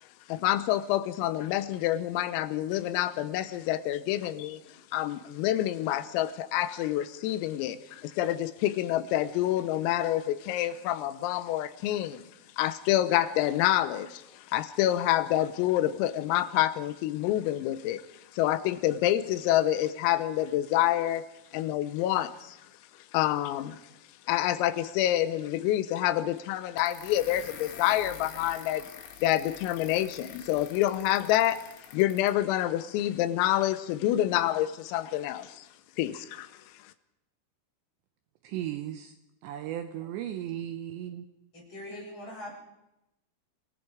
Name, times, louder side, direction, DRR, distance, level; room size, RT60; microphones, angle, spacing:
voice 1, 0.3-4.6 4.9-12.3 12.6-18.0 18.3-21.3 21.5-22.6 23.1-23.8 24.3-28.9 29.2-31.7 31.9-35.7 36.0-36.5, left 13 dB, 85° left, 13 dB, 3.6 m, -27 dB
sound 1, 26.8-32.4, left 8 dB, 70° left, 4.0 m, -46 dB
voice 2, 38.4-39.1 39.4-41.3, right 11 dB, 75° right, 8 dB, 2.8 m, -36 dB
voice 3, 41.5-42.5, left 1 dB, 25° left, -3 dB, 8.5 m, -41 dB
28.0 x 19.0 x 4.9 m, 0.89 s
omnidirectional pair, 5.9 m